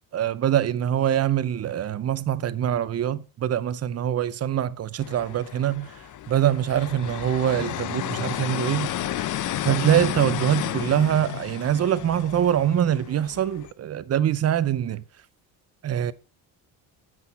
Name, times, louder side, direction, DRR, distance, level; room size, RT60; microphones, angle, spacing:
voice 1, 0.1-5.9 6.3-8.9 9.6-15.0 15.8-16.1, right 10 dB, 35° right, 0.6 m, -24 dB
sound 1, 5.0-13.7, left 12 dB, 50° left, 0.6 m, -32 dB
7.8 x 6.1 x 4.2 m
cardioid pair, 95°, 41 cm